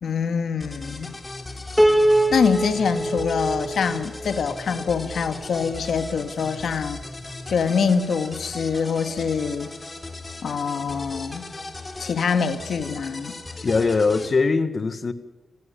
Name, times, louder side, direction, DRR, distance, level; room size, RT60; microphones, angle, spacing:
voice 1, 0.0-1.1 2.3-7.0 7.5-9.7 10.4-11.4 12.0-13.4, left 6 dB, 75° left, 2.0 m, -24 dB
sound 1, 0.6-14.3, left 2 dB, 30° left, 3.9 m, -38 dB
Piano, 1.8-5.0, right 1 dB, ahead, 2.6 m, -22 dB
voice 2, 13.6-15.1, left 4 dB, 50° left, 1.8 m, -21 dB
26.0 x 17.5 x 7.2 m
cardioid pair, 75°, 0 cm